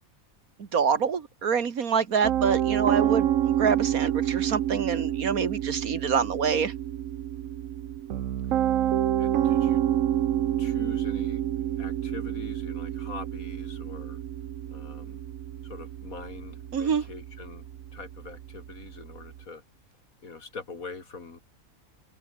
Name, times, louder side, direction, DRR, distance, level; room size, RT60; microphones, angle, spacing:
voice 1, 0.6-6.7 16.7-17.0, right 6 dB, 90° right, 2.1 m, -26 dB
Piano, 2.2-19.4, right 11 dB, 70° right, 1.1 m, -28 dB
voice 2, 9.2-9.8 10.6-14.2 14.7-15.2 15.6-19.6 20.2-21.4, left 4 dB, 80° left, 3.1 m, -43 dB
open air
omnidirectional pair, 1.5 m